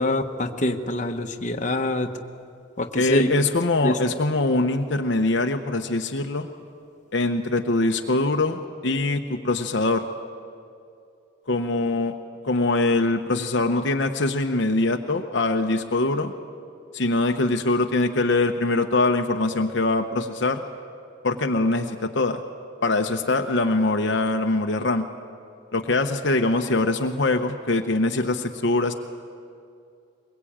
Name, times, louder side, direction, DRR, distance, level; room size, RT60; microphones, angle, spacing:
voice 1, 0.0-2.1 2.8-3.3 3.8-3.9, left 1 dB, 35° left, 4 dB, 1.2 m, -25 dB
voice 2, 2.9-6.5 7.1-10.1 11.5-12.1 12.4-16.3 16.9-20.6 21.2-22.4 22.8-25.1 25.7-28.9, left 2 dB, 60° left, 4 dB, 0.9 m, -23 dB
22.5 x 21.5 x 8.7 m, 2.5 s
head